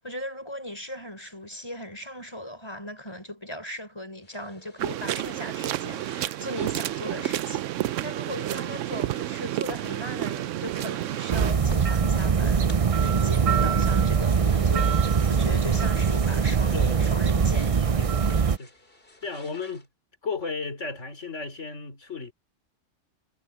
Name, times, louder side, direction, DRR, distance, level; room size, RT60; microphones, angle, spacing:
voice 1, 0.0-12.7 12.9-18.0, left 1 dB, 20° left, 4.9 m, -38 dB
sound 1, 4.2-19.9, left 2 dB, 50° left, 3.9 m, -52 dB
sound 2, 4.8-11.5, right 13 dB, 85° right, 0.9 m, -30 dB
sound 3, 11.3-18.6, right 6 dB, 40° right, 0.6 m, -22 dB
voice 2, 19.2-19.9 20.2-22.3, left 4 dB, 75° left, 3.6 m, -34 dB
omnidirectional pair, 1.2 m